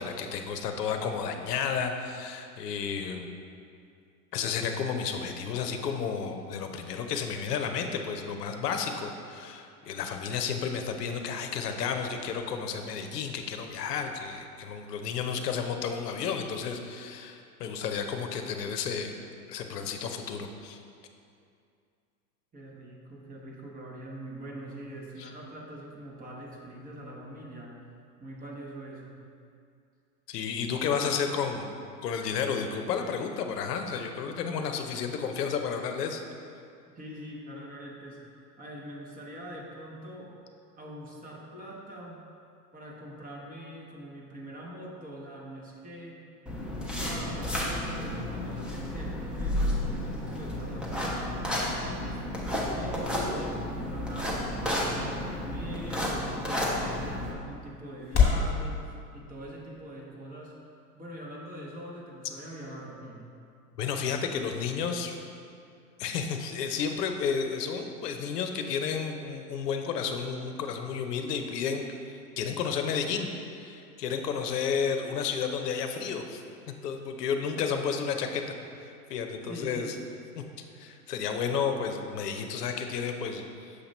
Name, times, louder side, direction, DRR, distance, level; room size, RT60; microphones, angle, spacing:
voice 1, 0.0-3.3 4.3-19.1 19.5-20.8 25.2-25.3 30.3-31.7 32.0-36.2 63.8-65.2 66.0-73.3 73.6-76.4 76.8-78.4 79.1-80.0 80.4-80.5 80.8-83.9, left 6 dB, 75° left, 5 dB, 0.7 m, -32 dB
voice 2, 22.5-27.8 28.2-29.2 36.9-40.4 40.8-42.2 42.7-46.2 47.0-60.5 60.9-63.2 78.4-78.5 79.5-80.0, right 1 dB, 20° right, -2 dB, 0.8 m, -43 dB
sound 1, 46.5-57.3, left 1 dB, ahead, 0.4 m, -32 dB
sound 2, 52.2-58.5, left 6 dB, 30° left, 1.3 m, -33 dB
6.5 x 2.9 x 5.1 m, 2.4 s
hypercardioid pair, 105°, 48 cm